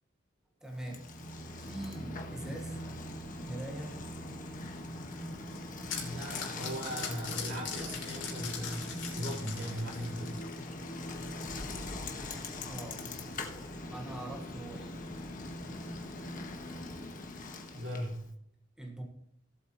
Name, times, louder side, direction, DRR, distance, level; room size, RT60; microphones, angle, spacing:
voice 1, 0.6-2.8 3.4-4.0 4.2-4.4 12.7-13.1 13.9-15.0 18.8-19.0, right 1 dB, 5° right, 0 dB, 1.4 m, -43 dB
Bicycle, 0.7-18.3, left 1 dB, 45° left, 1.3 m, -41 dB
sound 1, 5.2-10.7, left 7 dB, 70° left, 3.1 m, -41 dB
voice 2, 6.0-10.4 17.7-18.3, equal, 75° right, -4 dB, 4.1 m, -39 dB
17.0 x 7.9 x 3.0 m, 0.73 s
head